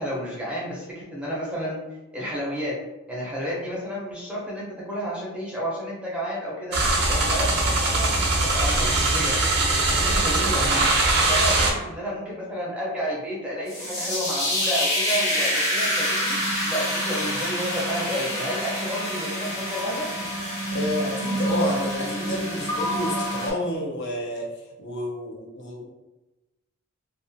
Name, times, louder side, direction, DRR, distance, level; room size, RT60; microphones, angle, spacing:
voice 1, 0.0-1.8 2.1-2.7 3.1-6.8 7.1-8.3 8.5-9.3 9.7-10.8 11.3-16.4 16.7-20.1, equal, 5° right, -6 dB, 0.6 m, -31 dB
sound 1, 6.7-11.7, right 2 dB, 50° right, 0.5 m, -21 dB
sound 2, 13.7-23.5, equal, 80° left, 1.2 m, -27 dB
voice 2, 20.7-24.5 24.8-25.8, left 1 dB, 55° left, -1 dB, 0.5 m, -29 dB
2.3 x 2.2 x 2.6 m, 1.0 s
head